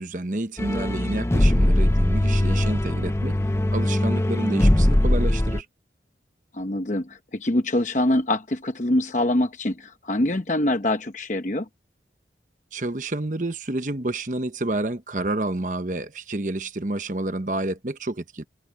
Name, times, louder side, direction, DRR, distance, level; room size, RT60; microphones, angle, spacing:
voice 1, 0.0-3.4 3.7-5.7 12.7-18.4, right 2 dB, 45° right, 1.1 m, -29 dB
sound 1, 0.6-5.6, left 1 dB, 15° left, 0.5 m, -21 dB
voice 2, 6.5-11.7, left 1 dB, 45° left, 0.9 m, -24 dB
head